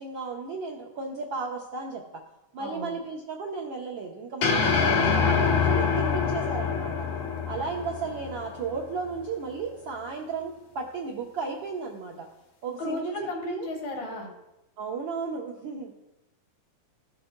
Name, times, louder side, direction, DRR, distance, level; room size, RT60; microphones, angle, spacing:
voice 1, 0.0-2.0 2.5-6.9 7.5-12.3 12.6-13.7 14.8-15.9, right 4 dB, 80° right, -2 dB, 1.0 m, -34 dB
voice 2, 2.6-3.0 12.8-14.3, left 2 dB, 70° left, -1 dB, 3.2 m, -34 dB
sound 1, 4.4-8.8, left 6 dB, 90° left, 2.6 m, -25 dB
15.5 x 6.6 x 2.2 m, 0.93 s
omnidirectional pair, 3.3 m